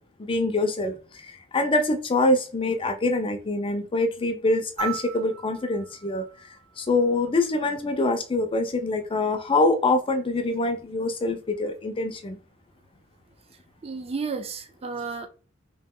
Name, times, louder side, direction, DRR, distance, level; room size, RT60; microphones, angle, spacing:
voice 1, 0.2-6.3 6.8-12.4, left 2 dB, 25° left, 0.4 m, -25 dB
sound 1, 4.8-7.3 9.0-9.1, right 11 dB, 65° right, 1.5 m, -38 dB
voice 2, 13.8-15.3, right 4 dB, 30° right, 0.5 m, -32 dB
2.9 x 2.9 x 3.6 m
head